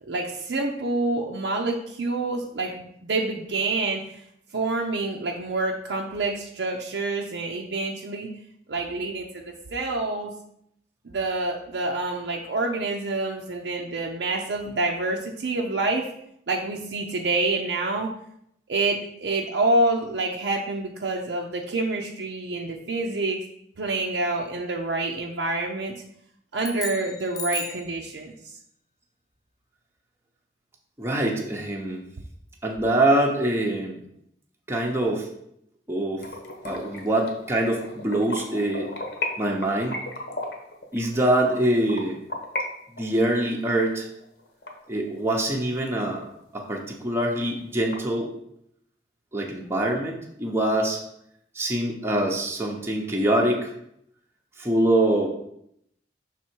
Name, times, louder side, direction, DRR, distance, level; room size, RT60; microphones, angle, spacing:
voice 1, 0.1-4.2 4.5-8.3 8.7-10.3 11.0-16.1 16.5-18.1 18.7-23.4 23.8-25.9 26.5-28.3, right 2 dB, 80° right, 0 dB, 0.6 m, -27 dB
sound 1, 26.6-27.9, left 6 dB, 20° left, 0.4 m, -35 dB
voice 2, 31.0-32.1 32.6-34.0 34.7-35.3 35.9-36.3 36.6-38.9 39.4-40.0 40.9-42.2 43.0-44.1 44.9-46.3 46.5-48.3 49.3-51.0 51.5-53.7 54.6-55.3, right 1 dB, 15° right, 0 dB, 0.7 m, -24 dB
sound 2, 36.2-42.6 43.0-45.5 45.9-46.0 46.4-46.5 46.8-46.9 47.2-47.9, left 2 dB, 65° left, 1.1 m, -35 dB
6.1 x 3.7 x 4.5 m, 0.73 s
head